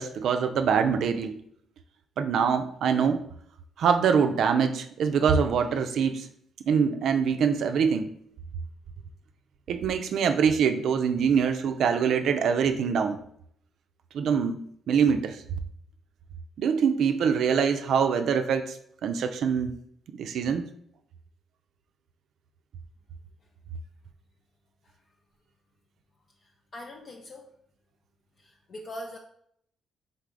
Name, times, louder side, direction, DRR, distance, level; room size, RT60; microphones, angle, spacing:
voice 1, 0.0-1.4 2.2-3.2 3.8-6.3 6.7-8.1 9.7-13.2 14.1-14.6 14.9-15.4 16.6-18.8 19.0-19.7 20.2-20.7, right 6 dB, 70° right, 7 dB, 0.3 m, -24 dB
voice 2, 26.4-27.4 28.4-29.2, left 1 dB, 45° left, 1 dB, 0.5 m, -42 dB
4.0 x 3.3 x 3.7 m, 0.67 s
cardioid pair, 90°, 0 cm